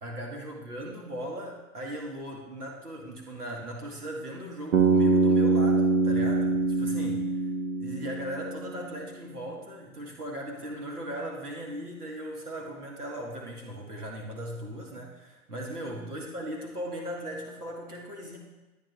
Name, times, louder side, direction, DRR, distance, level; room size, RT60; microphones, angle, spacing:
voice 1, 0.0-7.4 7.8-18.4, right 1 dB, 90° right, 0 dB, 1.6 m, -38 dB
Bass guitar, 4.7-8.8, right 3 dB, 70° right, 1.1 m, -24 dB
12.0 x 8.9 x 3.0 m, 1.1 s
figure-of-eight pair, 105°, 44 cm